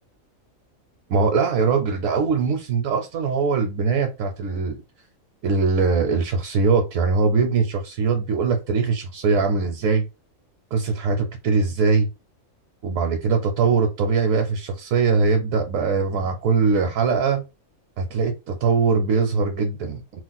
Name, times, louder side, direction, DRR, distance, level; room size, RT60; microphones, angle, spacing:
voice 1, 1.1-4.8 5.4-10.1 10.7-12.1 12.8-17.4 18.0-20.0, right 4 dB, 75° right, 1.0 m, -21 dB
2.5 x 2.1 x 3.9 m
omnidirectional pair, 1.4 m